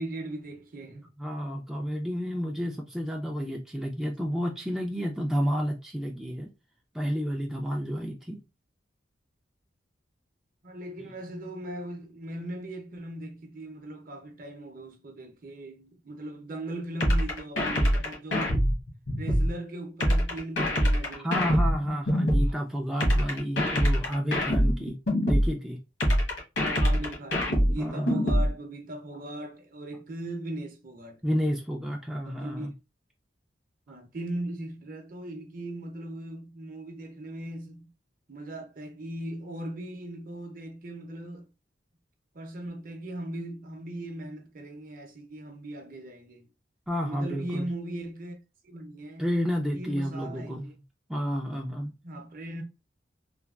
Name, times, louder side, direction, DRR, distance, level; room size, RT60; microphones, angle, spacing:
voice 1, 0.0-1.1 10.6-18.6 19.2-21.3 26.6-31.2 32.2-32.7 33.9-37.9 38.3-41.5 42.3-46.4 47.0-48.4 48.6-49.3 49.7-50.7 52.0-52.6, right 1 dB, 50° right, 0.6 m, -38 dB
voice 2, 1.2-6.5 6.9-8.4 21.2-25.0 25.2-25.8 27.8-28.3 31.2-32.7 46.9-47.7 49.2-50.6 51.1-51.9, equal, ahead, 0.3 m, -31 dB
sound 1, 17.0-19.5 20.0-22.5 23.0-25.5 26.0-28.5, equal, 70° left, 1.2 m, -24 dB
3.2 x 2.3 x 2.3 m
head